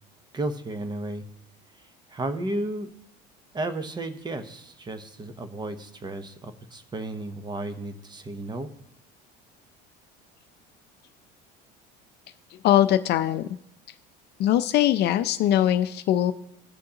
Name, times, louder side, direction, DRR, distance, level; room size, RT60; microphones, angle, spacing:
voice 1, 0.3-1.2 2.1-2.9 3.5-8.7, right 2 dB, 20° right, 9 dB, 0.8 m, -33 dB
voice 2, 12.6-13.5 14.4-16.3, left 12 dB, 50° left, 11 dB, 0.5 m, -21 dB
17.0 x 6.3 x 2.8 m, 0.76 s
cardioid pair, 120°, 21 cm